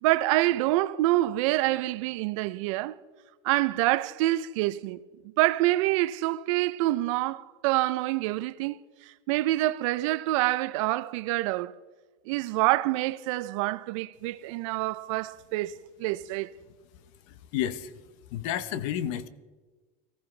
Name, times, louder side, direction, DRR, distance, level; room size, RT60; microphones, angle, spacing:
voice 1, 0.0-3.0 3.4-8.8 9.3-11.7 12.3-16.5, right 17 dB, 65° right, 0.5 m, -26 dB
voice 2, 17.3-17.9 18.3-19.3, left 11 dB, 60° left, 0.9 m, -31 dB
18.0 x 14.5 x 3.3 m
cardioid pair, 170°, 18 cm